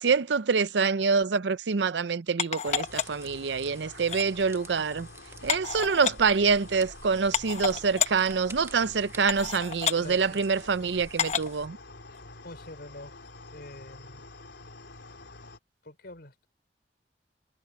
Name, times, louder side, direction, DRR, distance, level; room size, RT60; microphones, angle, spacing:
voice 1, 0.0-5.1 5.4-11.8, right 5 dB, 75° right, 0.6 m, -26 dB
sound 1, 2.4-3.3 4.0-4.3 5.5-6.1 6.9-7.0 7.3-8.1 8.8-8.9 9.3-10.0 11.2-11.5 12.1-12.2, left 7 dB, 40° left, 0.9 m, -29 dB
Air Conditioning, 2.7-15.6, left 2 dB, 80° left, 3.8 m, -48 dB
sound 2, 2.8-11.7, right 2 dB, 15° right, 1.4 m, -50 dB
voice 2, 9.9-10.4 12.4-14.2 15.8-16.5, left 1 dB, 65° left, 4.5 m, -46 dB
head